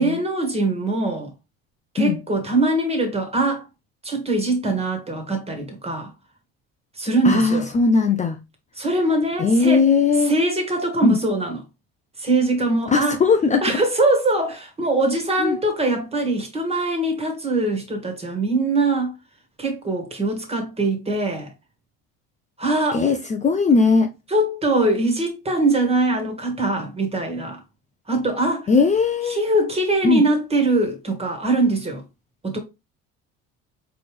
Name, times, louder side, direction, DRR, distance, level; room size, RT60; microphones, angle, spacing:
voice 1, 0.0-1.3 1.9-3.6 4.0-6.1 7.0-7.7 8.8-9.8 10.2-11.6 12.2-13.2 13.6-19.1 19.6-21.5 22.6-23.0 24.3-27.6 28.1-28.7 29.3-32.0 32.4-32.6, right 2 dB, 20° right, 1.7 m, -22 dB
voice 2, 7.2-8.4 9.4-10.3 11.0-11.2 12.9-13.8 15.4-15.6 22.9-24.1 28.7-29.4 30.0-30.3, left 4 dB, 25° left, 0.6 m, -19 dB
4.1 x 3.4 x 3.2 m
supercardioid pair, 95°, 30 cm